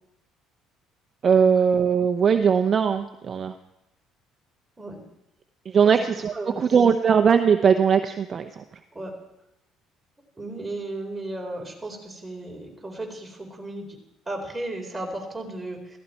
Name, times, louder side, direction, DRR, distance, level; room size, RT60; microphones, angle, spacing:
voice 1, 1.2-3.5 5.6-8.6, right 6 dB, 40° right, 7 dB, 0.9 m, -20 dB
voice 2, 6.3-6.6 8.9-9.1 10.4-14.0 14.3-16.0, right 2 dB, 15° right, 1 dB, 4.5 m, -34 dB
16.0 x 15.5 x 4.6 m, 0.87 s
supercardioid pair, 95°, 0 cm